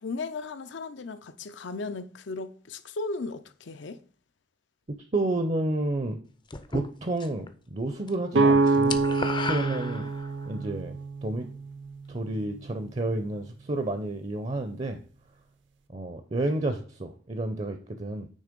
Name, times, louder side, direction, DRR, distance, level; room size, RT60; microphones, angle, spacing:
voice 1, 0.0-4.0, left 3 dB, 75° left, 0.6 m, -36 dB
voice 2, 5.1-6.2 6.7-9.0 9.4-10.1 10.5-10.9 11.2-11.5 12.1-15.0 15.9-18.3, right 2 dB, 35° right, 0.6 m, -30 dB
sound 1, 6.5-7.5 7.8-8.1 8.4-10.5, left 4 dB, 25° left, 0.5 m, -34 dB
sound 2, 8.3-12.1, right 3 dB, 75° right, 0.7 m, -25 dB
9.2 x 3.3 x 5.2 m
head